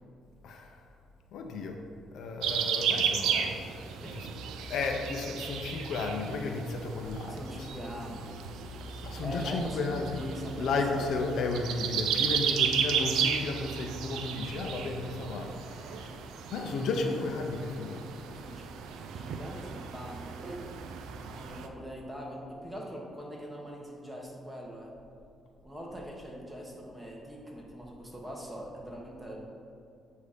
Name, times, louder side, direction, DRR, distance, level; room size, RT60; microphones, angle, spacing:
voice 1, 0.4-0.8 1.3-1.8 2.1-3.5 4.1-4.3 4.6-7.7 9.0-10.3 10.6-16.2 16.5-18.1, left 3 dB, 75° left, 3 dB, 0.6 m, -33 dB
sound 1, 2.4-21.7, right 7 dB, 85° right, 0.4 m, -34 dB
voice 2, 7.3-8.2 9.2-11.1 18.3-18.7 19.0-20.6 21.3-25.0 25.6-29.4, equal, 10° right, -2 dB, 1.2 m, -42 dB
8.0 x 2.7 x 5.0 m, 2.5 s
cardioid pair, 90°, 0 cm